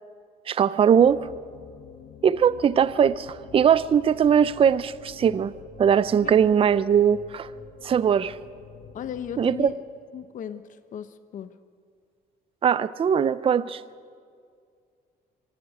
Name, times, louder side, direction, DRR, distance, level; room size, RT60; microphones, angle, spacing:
voice 1, 0.5-1.3 2.2-5.5 5.8-7.5 7.8-8.4 9.4-9.7 12.6-13.8, right 8 dB, 35° right, 0.5 m, -20 dB
sound 1, 1.0-9.7, left 8 dB, 65° left, 1.2 m, -47 dB
voice 2, 6.2-6.7 8.9-9.8 10.1-11.6, left 8 dB, 50° left, 0.9 m, -37 dB
24.5 x 12.5 x 9.8 m
cardioid pair, 110°, 17 cm